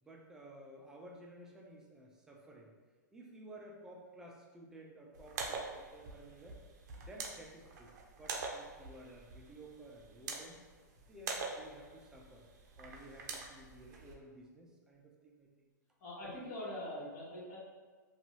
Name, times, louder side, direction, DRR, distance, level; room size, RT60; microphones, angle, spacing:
voice 1, 0.0-2.7 3.1-6.6 7.0-7.9 8.2-10.6 11.1-12.5 12.8-15.7, right 1 dB, 5° right, -2 dB, 0.4 m, -54 dB
sound 1, 5.1-14.1, right 4 dB, 65° right, 0.5 m, -45 dB
voice 2, 16.0-17.6, left 1 dB, 60° left, -7 dB, 1.3 m, -43 dB
2.6 x 2.3 x 2.9 m, 1.4 s
hypercardioid pair, 120°, 10 cm